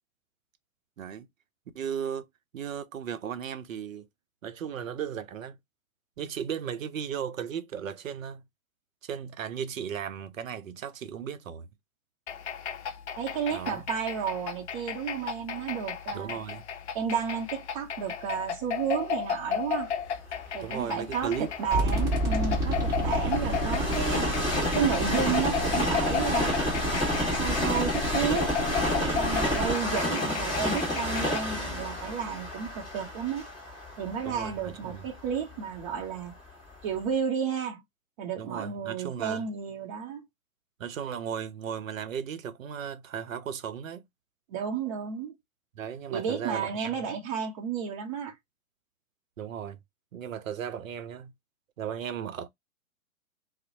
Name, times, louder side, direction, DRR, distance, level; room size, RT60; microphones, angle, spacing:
voice 1, 1.7-2.3 2.5-4.1 4.4-5.6 6.2-8.4 9.0-11.7 13.5-13.8 16.1-16.6 20.6-21.5 24.2-24.5 29.4-29.6 31.5-31.6 34.2-35.1 38.4-39.5 40.8-44.0 45.7-47.0 49.4-49.8 50.1-51.3 51.8-52.5, right 8 dB, 65° right, 0.6 m, -36 dB
sound 1, 12.3-31.6, left 7 dB, 50° left, 0.6 m, -35 dB
voice 2, 13.2-16.4 16.9-19.9 20.5-24.3 24.7-26.5 26.9-28.5 28.9-33.5 34.0-36.3 36.8-37.8 38.2-40.3 44.5-45.3 46.1-48.3, right 7 dB, 25° right, 0.6 m, -32 dB
Train, 20.3-36.3 36.9-37.0, left 1 dB, 10° left, 1.2 m, -31 dB
sound 2, 21.7-29.7, equal, 10° right, 1.0 m, -30 dB
2.6 x 2.0 x 2.7 m
figure-of-eight pair, 120°, 43 cm